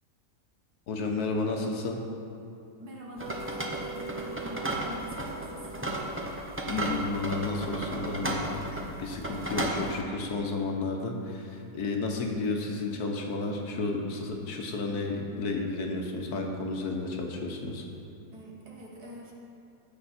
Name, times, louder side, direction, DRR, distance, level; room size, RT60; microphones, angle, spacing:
voice 1, 0.9-2.0 6.7-8.6 9.0-17.9, left 3 dB, 70° left, 2 dB, 1.5 m, -32 dB
voice 2, 2.8-5.9 9.4-10.3 18.3-19.3, right 1 dB, 75° right, -2 dB, 2.0 m, -45 dB
sound 1, 3.2-10.0, right 1 dB, 15° right, 0.6 m, -34 dB
sound 2, 3.2-9.3, right 3 dB, 30° right, 1.5 m, -45 dB
15.0 x 5.8 x 4.3 m, 2.6 s
omnidirectional pair, 1.7 m